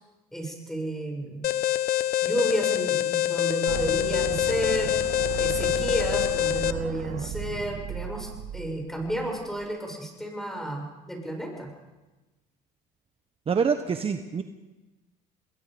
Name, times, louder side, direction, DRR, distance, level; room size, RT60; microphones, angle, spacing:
voice 1, 0.3-1.5 2.2-5.0 5.4-11.7, equal, ahead, 2 dB, 7.2 m, -32 dB
Alarm, 1.4-6.7, left 14 dB, 55° left, 1.1 m, -25 dB
sound 1, 3.7-9.6, right 10 dB, 65° right, 1.7 m, -35 dB
voice 2, 13.5-14.4, right 6 dB, 35° right, 8 dB, 1.3 m, -25 dB
28.0 x 21.0 x 5.3 m, 1.1 s
supercardioid pair, 90°, 18 cm